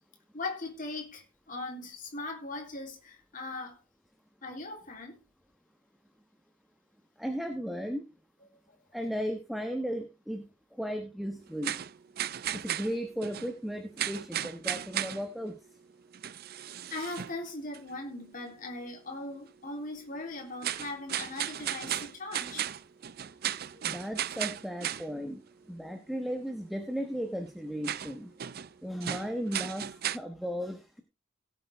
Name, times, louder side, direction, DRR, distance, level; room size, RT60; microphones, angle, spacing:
voice 1, 0.3-3.8 4.4-5.2 16.9-22.7 23.7-23.8, left 2 dB, 40° left, 3.5 m, -39 dB
voice 2, 7.2-8.0 8.9-10.5 10.8-11.8 12.5-15.6 23.8-25.4 25.7-28.3 28.8-31.0, equal, ahead, 1.2 m, -35 dB
sound 1, 11.6-13.6 14.0-15.4 16.1-17.4 17.7-18.0 20.6-25.1 27.8-28.7 29.0-30.2, right 11 dB, 50° right, 0.5 m, -35 dB
17.0 x 8.2 x 3.5 m
head